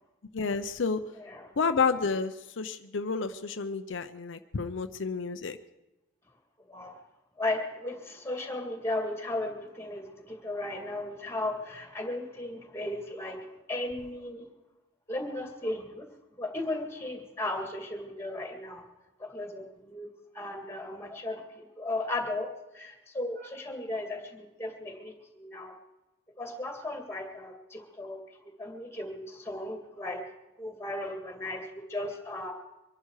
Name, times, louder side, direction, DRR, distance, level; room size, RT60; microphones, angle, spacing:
voice 1, 0.3-1.0 1.6-5.6, left 5 dB, 75° left, 9 dB, 0.6 m, -30 dB
voice 2, 1.2-1.5 6.7-7.0 7.4-14.4 15.1-16.1 16.4-18.8 19.2-20.1 20.3-25.8 26.4-28.2 28.6-30.2 30.6-32.5, left 2 dB, 15° left, 3 dB, 2.2 m, -36 dB
24.0 x 11.0 x 4.8 m, 1.0 s
head